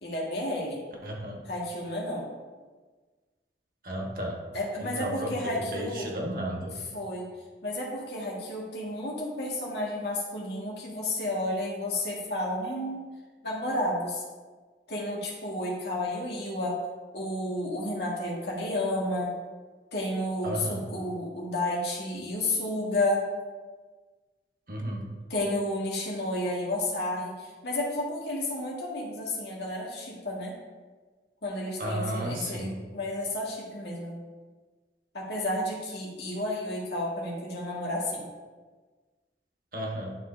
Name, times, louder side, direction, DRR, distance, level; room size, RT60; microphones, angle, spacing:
voice 1, 0.0-0.8 1.4-2.2 4.5-6.1 6.9-7.3 7.6-13.0 13.4-14.2 14.9-16.8 17.1-19.3 19.9-23.3 25.3-30.6 31.4-34.2 35.1-38.3, left 1 dB, 75° left, -3 dB, 1.8 m, -31 dB
voice 2, 1.0-1.4 3.8-4.4 4.8-6.8 20.4-20.8 24.7-25.0 31.8-32.8 39.7-40.2, right 1 dB, 50° right, -1 dB, 1.2 m, -33 dB
11.5 x 4.6 x 2.7 m, 1.4 s
head